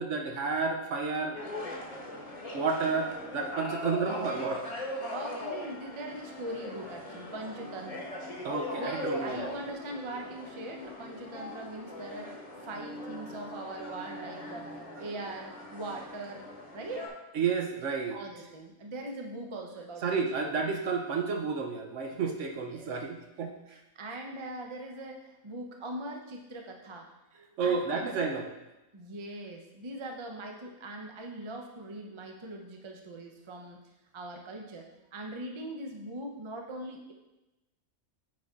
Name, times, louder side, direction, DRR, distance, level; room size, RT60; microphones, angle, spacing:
voice 1, 0.0-1.4 2.5-4.6 8.4-9.5 17.3-18.2 20.0-23.8 27.6-28.5, right 5 dB, 60° right, 4 dB, 1.0 m, -31 dB
sound 1, 1.3-17.1, left 1 dB, 25° left, 1.1 m, -40 dB
voice 2, 5.1-8.3 8.8-12.3 12.6-14.7 15.0-16.4 16.7-17.1 18.1-20.2 20.6-20.7 22.7-22.9 23.9-27.1 27.3-28.3 28.9-33.8 34.1-37.1, right 1 dB, 30° right, 2 dB, 0.5 m, -41 dB
9.3 x 4.2 x 3.6 m, 0.97 s
omnidirectional pair, 1.5 m